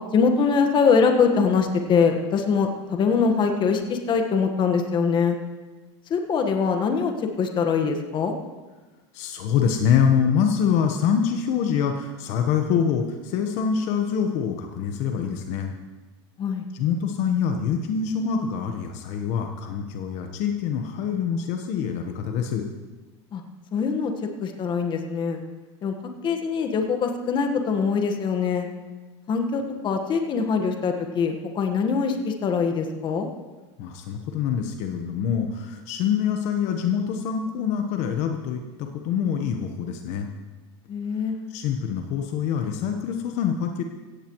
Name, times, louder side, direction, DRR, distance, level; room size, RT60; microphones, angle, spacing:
voice 1, 0.1-5.4 6.1-8.3 16.4-16.6 23.3-23.4 23.7-24.1 24.4-25.4 25.8-25.9 26.2-28.7 29.3-33.3 40.9-41.4, left 5 dB, 30° left, 4 dB, 1.5 m, -23 dB
voice 2, 9.1-15.7 16.7-22.6 33.8-40.3 41.5-43.8, left 7 dB, 55° left, 4 dB, 1.2 m, -25 dB
16.5 x 15.0 x 3.2 m, 1.2 s
supercardioid pair, 135°, 15 cm